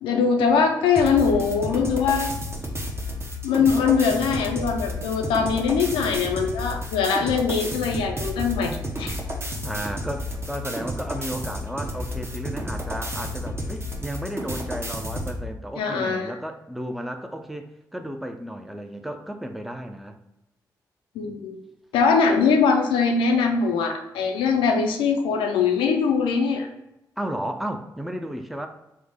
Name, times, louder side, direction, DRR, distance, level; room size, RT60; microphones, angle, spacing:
voice 1, 0.0-2.3 3.4-9.1 15.8-16.3 21.2-21.6 21.9-26.7, left 5 dB, 90° left, 3 dB, 0.3 m, -22 dB
sound 1, 0.9-15.4, equal, 30° right, 0.8 m, -31 dB
voice 2, 9.6-20.2 27.2-28.7, equal, ahead, 6 dB, 0.4 m, -33 dB
3.2 x 2.1 x 3.5 m, 0.92 s
supercardioid pair, 40°, 8 cm